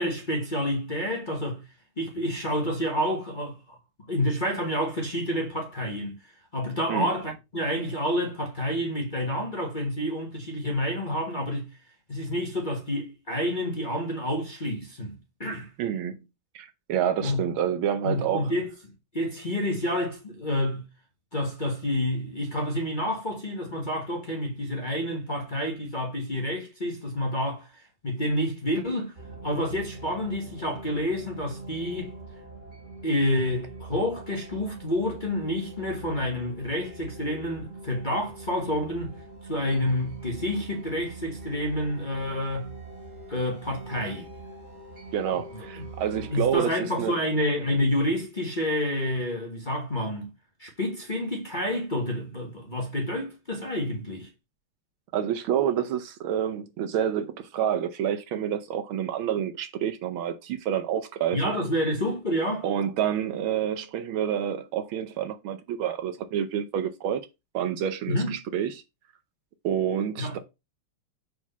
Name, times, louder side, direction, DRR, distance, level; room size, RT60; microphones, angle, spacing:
voice 1, 0.0-1.6 2.0-3.8 4.1-11.7 12.1-15.7 17.2-17.5 18.0-18.7 19.1-20.9 21.3-29.1 29.4-32.1 33.0-39.2 39.5-42.7 43.3-44.3 45.3-45.8 46.2-50.3 50.6-54.3 61.3-62.6 68.1-68.3 70.2-70.4, left 1 dB, 25° left, 1.2 m, -29 dB
voice 2, 15.8-16.2 16.5-18.5 45.1-47.1 55.1-61.4 62.6-67.2 67.5-68.8 69.6-70.4, right 9 dB, 75° right, 1.5 m, -28 dB
sound 1, 29.2-46.6, right 2 dB, 35° right, 2.9 m, -43 dB
4.8 x 4.6 x 5.5 m
omnidirectional pair, 2.4 m